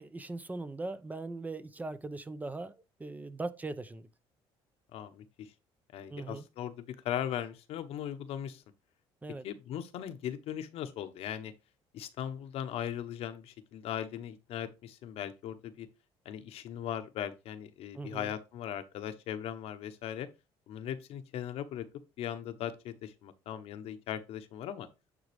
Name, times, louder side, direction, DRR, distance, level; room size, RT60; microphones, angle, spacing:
voice 1, 0.0-4.1 6.1-6.4 9.2-9.5 17.9-18.3, right 2 dB, 15° right, 0.7 m, -40 dB
voice 2, 4.9-5.5 5.9-8.6 9.4-11.5 11.9-15.9 16.2-20.3 20.7-21.9 22.2-24.9, left 10 dB, 65° left, 1.0 m, -39 dB
9.4 x 3.8 x 3.5 m
cardioid pair, 110°, 11 cm